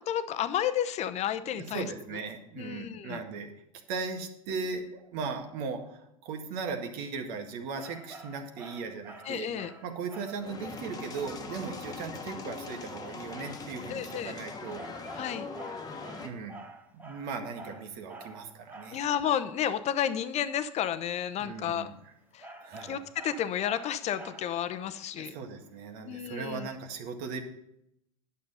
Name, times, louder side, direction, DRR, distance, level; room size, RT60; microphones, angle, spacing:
voice 1, 0.0-1.9 2.6-3.2 9.3-9.7 13.9-14.3 15.2-15.5 18.9-21.9 22.3-22.5 22.8-25.3 26.0-26.7, left 10 dB, 35° left, 11 dB, 0.9 m, -31 dB
voice 2, 1.4-3.5 3.9-9.5 9.8-14.9 16.2-16.7 16.9-19.1 21.4-22.1 22.6-23.0 25.2-27.4, right 5 dB, 55° right, 5 dB, 1.8 m, -38 dB
sound 1, 7.7-10.5 14.7-19.1 22.4-24.7, right 2 dB, 10° right, 1.4 m, -48 dB
sound 2, 10.4-16.3, left 4 dB, 20° left, 1.4 m, -41 dB
10.5 x 7.1 x 5.6 m, 0.78 s
hypercardioid pair, 95°, 18 cm